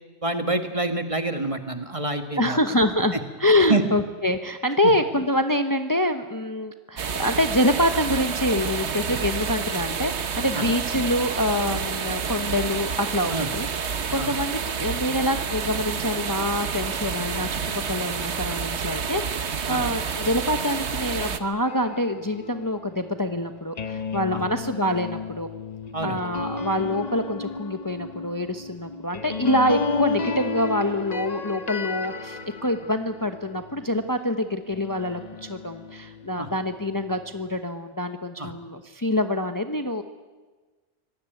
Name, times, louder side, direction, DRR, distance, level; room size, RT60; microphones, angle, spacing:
voice 1, 0.2-2.6 3.1-3.2 3.7-3.8 4.8-4.9 10.5-10.6 13.3-13.5 14.2-14.3 19.7-19.8 24.3-24.4 25.9-26.2 36.4-36.5 38.4-38.5, right 2 dB, 30° right, 7 dB, 1.7 m, -27 dB
voice 2, 2.4-3.1 3.4-25.5 26.0-35.2 35.5-40.0, left 1 dB, 20° left, 7 dB, 1.0 m, -26 dB
sound 1, 7.0-21.4, right 6 dB, 75° right, 1.4 m, -29 dB
sound 2, 21.7-34.2 34.7-37.6, left 4 dB, 40° left, 0.9 m, -33 dB
25.0 x 19.5 x 9.2 m, 1.3 s
omnidirectional pair, 1.1 m